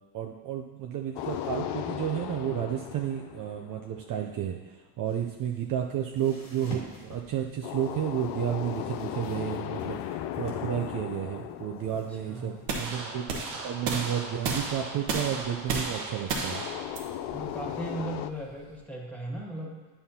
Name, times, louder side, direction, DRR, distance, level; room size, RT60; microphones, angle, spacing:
voice 1, 0.1-4.6 5.0-13.3 13.6-16.6, right 10 dB, 45° right, 2 dB, 0.6 m, -32 dB
sound 1, 1.2-4.2 7.6-13.0 16.5-18.3, left 11 dB, 60° left, 0.5 m, -36 dB
sound 2, 5.0-13.0, left 1 dB, 80° left, 2.2 m, -49 dB
voice 2, 11.9-12.6 17.3-19.9, right 1 dB, 5° left, -2 dB, 1.8 m, -38 dB
sound 3, 12.7-18.8, right 3 dB, 90° right, 1.1 m, -34 dB
8.8 x 5.6 x 2.8 m, 1.2 s
hypercardioid pair, 75°, 47 cm